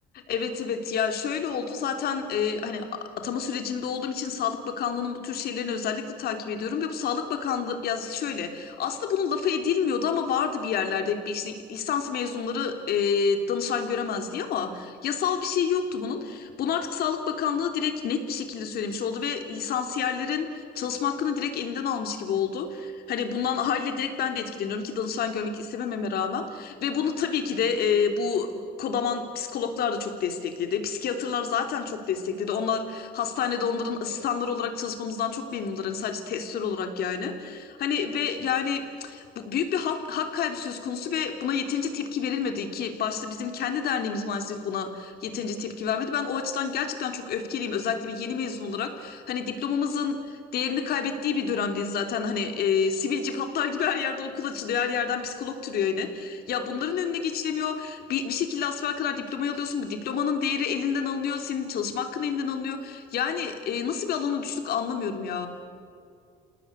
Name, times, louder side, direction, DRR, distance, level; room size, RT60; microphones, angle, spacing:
voice 1, 0.3-28.5 28.8-65.5, left 6 dB, 65° left, 6 dB, 3.3 m, -29 dB
28.5 x 18.5 x 9.8 m, 2.3 s
cardioid pair, 110°, 17 cm